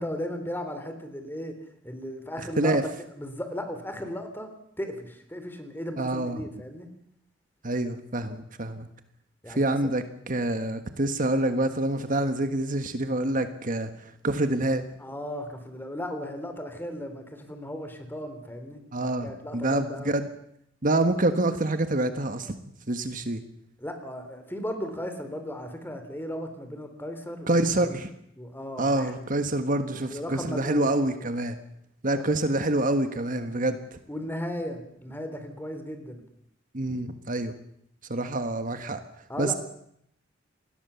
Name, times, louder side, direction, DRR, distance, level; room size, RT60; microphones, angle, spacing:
voice 1, 0.0-2.8 3.1-6.9 9.4-9.8 10.5-10.6 15.0-18.8 19.2-20.1 23.8-27.9 28.4-29.3 30.1-31.0 32.1-32.2 34.1-36.2 39.3-39.6, equal, 10° left, 7 dB, 3.6 m, -36 dB
voice 2, 6.0-6.4 7.6-8.9 9.6-13.9 14.2-14.9 18.9-20.3 20.8-22.5 22.9-23.4 27.5-28.1 28.8-31.5 32.0-33.8 36.7-37.5 38.1-39.0 39.4-39.5, right 2 dB, 45° right, 8 dB, 1.5 m, -26 dB
28.0 x 20.5 x 7.1 m, 0.73 s
head